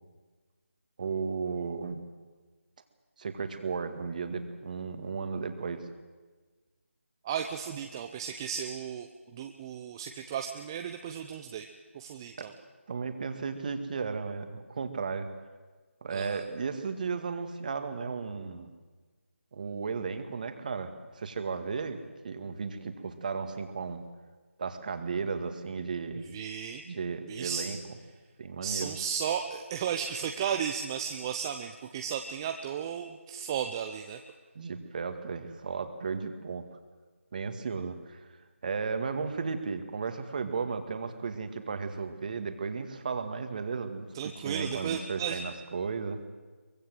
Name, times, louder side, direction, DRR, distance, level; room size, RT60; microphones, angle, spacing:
voice 1, 1.0-2.0 3.2-5.9 12.4-12.5 12.9-15.3 16.0-18.7 19.5-22.0 22.2-24.0 24.6-26.2 26.8-27.8 28.4-28.9 34.6-36.6 37.3-38.3 38.6-44.1 44.4-46.2, right 5 dB, 35° right, 8 dB, 2.0 m, -34 dB
voice 2, 7.2-11.7 11.9-12.5 16.1-16.4 26.2-26.8 27.3-27.7 28.6-34.2 44.1-45.4, right 8 dB, 15° right, 5 dB, 0.7 m, -34 dB
23.5 x 20.0 x 7.9 m, 1.3 s
figure-of-eight pair, 160°, 7 cm